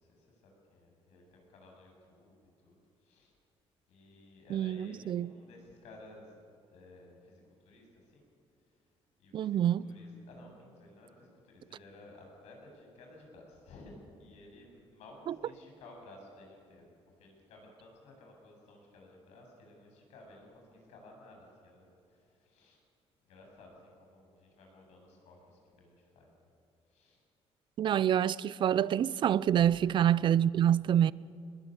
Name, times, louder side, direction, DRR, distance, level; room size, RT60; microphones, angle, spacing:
voice 1, 0.0-3.3 3.9-6.3 6.7-8.3 8.7-8.8 9.2-16.9 17.2-22.8 23.2-26.5 26.9-27.2 29.5-29.8, left 2 dB, 85° left, 8.0 m, -55 dB
voice 2, 4.5-5.3 9.3-9.9 15.3-15.4 27.8-31.1, right 10 dB, 45° right, 0.5 m, -27 dB
22.0 x 21.0 x 8.2 m
cardioid pair, 155°, 11 cm